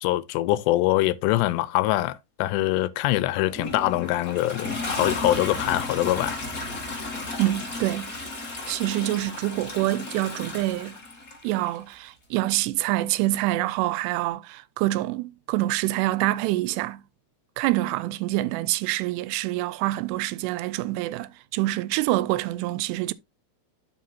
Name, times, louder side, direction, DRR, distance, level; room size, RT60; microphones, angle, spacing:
voice 1, 0.0-6.4, left 16 dB, 85° left, 2.8 m, -24 dB
Toilet flush, 3.3-11.8 12.8-12.9, left 2 dB, 30° left, 1.9 m, -34 dB
voice 2, 7.4-8.1 8.7-11.0 11.4-17.0 17.6-23.1, right 17 dB, 85° right, 2.7 m, -26 dB
11.5 x 6.1 x 2.8 m
omnidirectional pair, 4.8 m